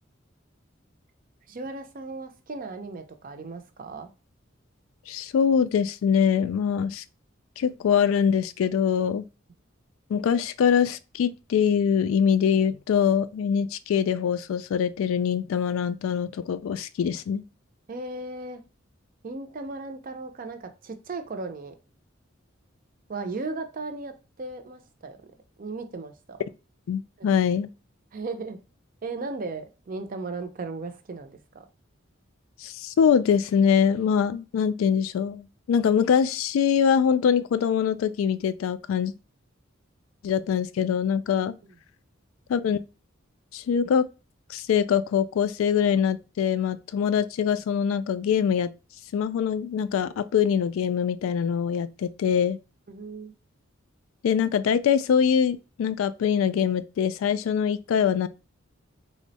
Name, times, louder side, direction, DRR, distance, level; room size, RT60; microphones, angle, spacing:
voice 1, 1.5-4.1 17.9-18.6 19.2-21.7 23.1-25.2 25.6-26.4 27.2-27.3 28.1-28.6 29.0-31.6 52.9-53.3, right 3 dB, 45° right, 0.5 m, -36 dB
voice 2, 5.1-7.0 7.6-9.2 10.1-17.4 26.9-27.7 32.6-39.1 40.2-41.5 42.5-42.8 43.5-44.1 44.5-48.7 49.1-52.6 54.2-58.3, left 7 dB, 85° left, 0.3 m, -23 dB
3.5 x 2.1 x 3.9 m
head